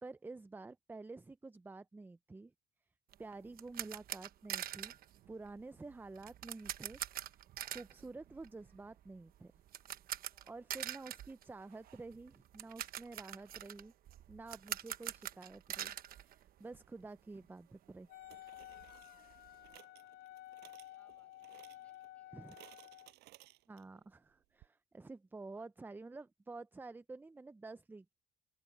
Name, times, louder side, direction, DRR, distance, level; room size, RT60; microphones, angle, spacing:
voice 1, 0.0-2.5 3.2-5.0 5.3-7.0 7.3-7.4 7.6-9.5 10.5-13.9 14.3-18.1 22.3-22.6 23.7-28.1, right 3 dB, 10° right, 0.5 m, -50 dB
sound 1, 3.1-17.1 17.3-17.5 17.9-18.0 18.2-19.8, right 12 dB, 60° right, 1.0 m, -45 dB
voice 2, 10.3-10.7 19.7-20.4 20.9-22.4 25.4-25.6, left 1 dB, 5° left, 8.0 m, -75 dB
sound 2, 17.0-17.1 18.3-24.0 24.3-24.4 24.6-24.7, right 18 dB, 85° right, 5.3 m, -62 dB
Wind instrument woodwind instrument, 18.1-23.1, left 14 dB, 75° left, 0.5 m, -53 dB
open air
cardioid pair, 110°, 17 cm